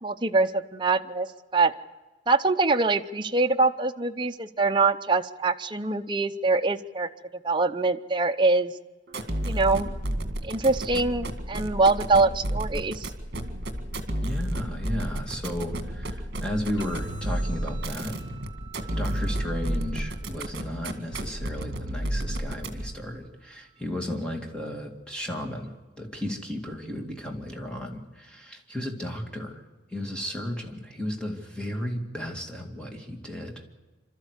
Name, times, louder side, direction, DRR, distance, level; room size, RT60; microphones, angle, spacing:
voice 1, 0.0-1.3 1.5-1.7 2.3-7.1 7.4-8.7 9.4-9.9 10.4-13.1, right 3 dB, 25° right, 5 dB, 0.7 m, -24 dB
sound 1, 9.1-23.0, right 1 dB, 55° right, 2.0 m, -32 dB
voice 2, 14.2-18.3 18.9-29.6 29.9-33.8, left 1 dB, 5° left, 2 dB, 2.3 m, -34 dB
sound 2, 16.8-24.8, right 6 dB, 70° left, 6.1 m, -52 dB
27.5 x 13.0 x 8.2 m, 1.3 s
head